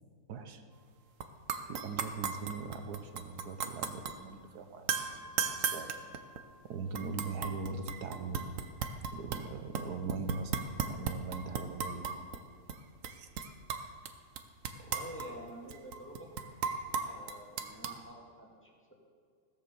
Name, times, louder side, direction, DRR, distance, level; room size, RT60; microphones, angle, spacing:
voice 1, 0.3-0.6 1.6-5.9 6.6-8.5 9.1-12.1 13.2-13.3, right 4 dB, 85° right, 7 dB, 1.5 m, -41 dB
sound 1, 1.2-1.3 1.5-4.2 4.9-6.5 6.9-9.5 9.7-12.4 12.7-12.8 13.0-14.1 14.4-18.0, right 6 dB, 60° right, 1.1 m, -36 dB
voice 2, 14.7-16.4 17.0-18.9, right 1 dB, 5° left, -3 dB, 2.1 m, -48 dB
17.0 x 7.5 x 6.9 m, 2.1 s
omnidirectional pair, 1.7 m